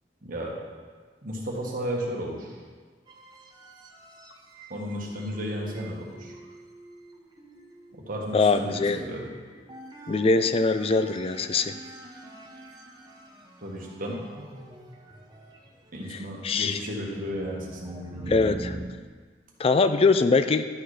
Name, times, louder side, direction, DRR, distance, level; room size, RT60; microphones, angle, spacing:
voice 1, 0.2-0.5 1.2-2.6 4.7-6.3 8.1-9.3 13.6-14.2 15.9-18.5, equal, 50° right, -2 dB, 1.5 m, -34 dB
sound 1, 3.1-18.8, right 1 dB, 25° right, 1.0 m, -45 dB
voice 2, 8.3-9.0 10.1-11.7 16.1-16.2 16.4-16.8 18.3-18.7 19.6-20.6, left 4 dB, 35° left, 10 dB, 0.4 m, -22 dB
11.5 x 4.3 x 4.9 m, 1.5 s
head